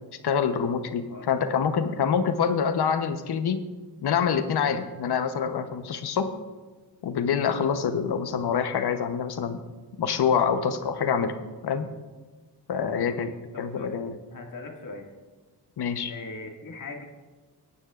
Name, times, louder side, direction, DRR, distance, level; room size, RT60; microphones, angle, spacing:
voice 1, 0.2-3.6 4.0-6.4 7.0-9.6 10.0-11.3 11.6-11.9 12.7-13.3 13.6-14.1 15.8-16.1, left 7 dB, 75° left, 9 dB, 1.0 m, -26 dB
voice 2, 1.1-1.7 12.7-14.0 14.3-15.1 16.1-17.0, left 3 dB, 50° left, 1 dB, 2.1 m, -41 dB
17.5 x 9.8 x 2.5 m, 1.3 s
cardioid pair, 85°, 40 cm